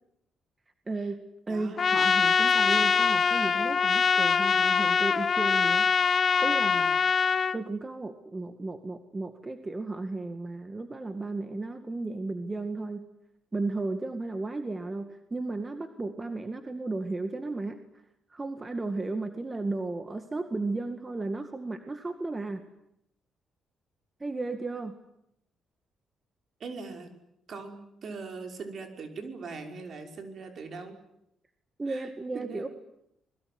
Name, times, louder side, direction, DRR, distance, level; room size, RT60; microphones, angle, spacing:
voice 1, 0.9-5.9 6.4-7.0 7.5-13.1 13.5-17.8 18.3-22.7 24.2-24.9 31.8-32.7, right 3 dB, 25° right, 8 dB, 2.1 m, -34 dB
voice 2, 1.5-1.8 26.6-27.1 27.5-31.0 31.9-32.7, right 4 dB, 55° right, 5 dB, 5.6 m, -41 dB
Trumpet, 1.8-7.6, left 6 dB, 45° left, 1.1 m, -23 dB
26.0 x 22.0 x 9.7 m, 0.80 s
cardioid pair, 90°, 0 cm